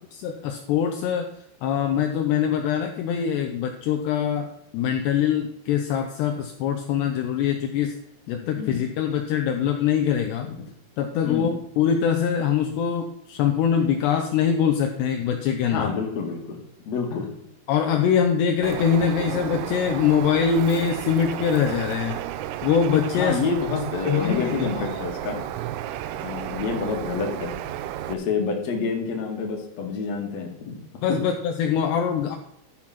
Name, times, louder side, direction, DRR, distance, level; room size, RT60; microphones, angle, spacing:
voice 1, 0.1-1.3 1.6-4.5 4.7-8.0 8.3-10.5 11.0-15.9 17.1-17.2 17.7-22.2 22.6-23.4 24.1-24.9 31.0-32.4, left 8 dB, 80° left, 4 dB, 2.6 m, -23 dB
voice 2, 11.2-11.6 15.7-16.6 16.9-17.2 23.2-25.4 26.2-27.5 28.1-30.8, left 5 dB, 50° left, 0 dB, 2.3 m, -28 dB
Bird, 18.6-28.1, right 12 dB, 90° right, 3.3 m, -33 dB
13.0 x 6.0 x 5.9 m, 0.75 s
omnidirectional pair, 5.7 m